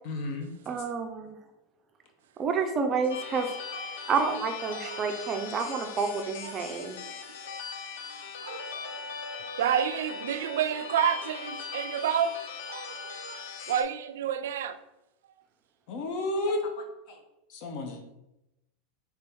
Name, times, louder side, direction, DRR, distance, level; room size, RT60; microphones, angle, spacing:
voice 1, 0.0-0.5 15.9-17.2 17.5-18.0, left 2 dB, 45° left, 0.7 m, -32 dB
voice 2, 0.7-1.4 2.4-3.5 4.1-7.0, right 5 dB, 20° right, 0.5 m, -29 dB
sound 1, 3.1-13.8, left 5 dB, 80° left, 0.5 m, -40 dB
voice 3, 4.7-5.0 6.4-7.0 7.5-7.6 8.4-9.0 9.6-12.4 12.7-14.8, right 9 dB, 90° right, 0.3 m, -30 dB
3.4 x 3.4 x 4.4 m
supercardioid pair, 165°, 0 cm